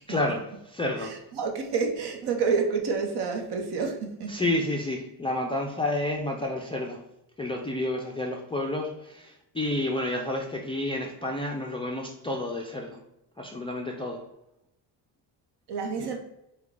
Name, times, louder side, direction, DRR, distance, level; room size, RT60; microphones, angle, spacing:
voice 1, 0.1-1.1 4.3-7.0 7.4-13.0 13.4-14.2 16.0-16.1, left 1 dB, 15° left, 0.3 m, -30 dB
voice 2, 1.0-4.5 15.7-16.2, right 5 dB, 60° right, 1.0 m, -29 dB
4.6 x 2.3 x 3.7 m
cardioid pair, 110°, 46 cm